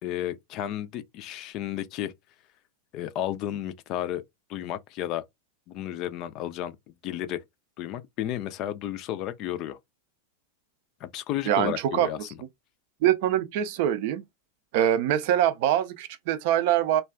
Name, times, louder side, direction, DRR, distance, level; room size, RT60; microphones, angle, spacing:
voice 1, 0.0-2.1 2.9-4.2 4.5-5.2 5.7-6.7 7.0-7.4 7.8-9.8 11.0-12.3, left 12 dB, 40° left, 0.4 m, -32 dB
voice 2, 11.5-12.1 13.0-14.2 14.7-17.0, right 11 dB, 50° right, 0.4 m, -24 dB
2.4 x 2.2 x 3.5 m
figure-of-eight pair, 90°, 0 cm